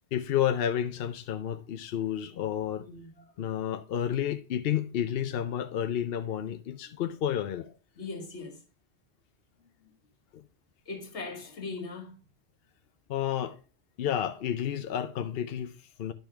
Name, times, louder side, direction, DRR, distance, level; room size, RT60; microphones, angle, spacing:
voice 1, 0.1-2.9 3.4-7.7 10.3-10.4 13.1-13.6 14.0-16.1, left 10 dB, 65° left, 0.8 m, -31 dB
voice 2, 2.8-3.6 6.9-7.0 8.0-8.6 9.6-9.9 10.8-12.2, left 3 dB, 85° left, 1.6 m, -41 dB
10.5 x 5.3 x 3.4 m
omnidirectional pair, 1.1 m